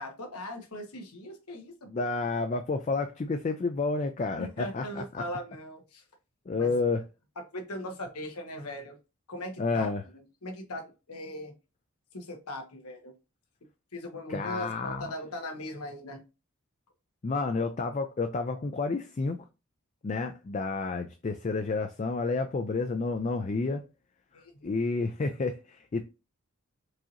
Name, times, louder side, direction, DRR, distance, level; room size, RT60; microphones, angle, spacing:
voice 1, 0.0-1.9 4.4-6.0 6.6-6.7 7.5-9.0 9.3-11.5 12.1-13.1 13.9-16.2 24.3-24.7, left 1 dB, 85° left, 1.3 m, -39 dB
voice 2, 1.9-5.2 6.5-7.0 9.6-10.0 14.3-15.1 17.2-19.4 20.0-23.8 24.6-26.1, left 3 dB, 30° left, 0.3 m, -30 dB
4.7 x 2.9 x 2.5 m
head